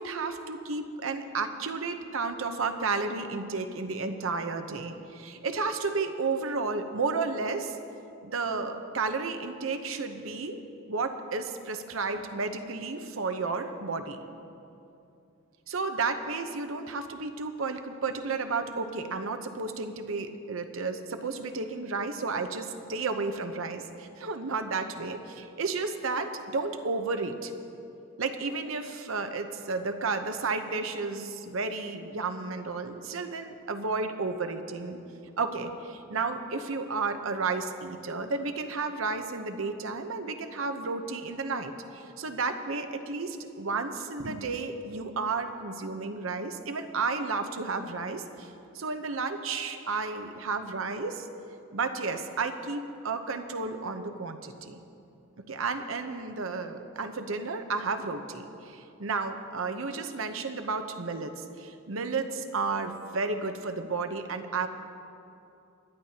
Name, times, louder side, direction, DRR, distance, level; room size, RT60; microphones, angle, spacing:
voice 1, 0.0-7.8 8.2-10.6 10.9-14.2 15.7-27.5 28.2-35.0 35.4-51.3 51.7-54.8 55.5-64.7, right 4 dB, 70° right, 7 dB, 0.8 m, -32 dB
22.5 x 10.5 x 2.9 m, 2.7 s
head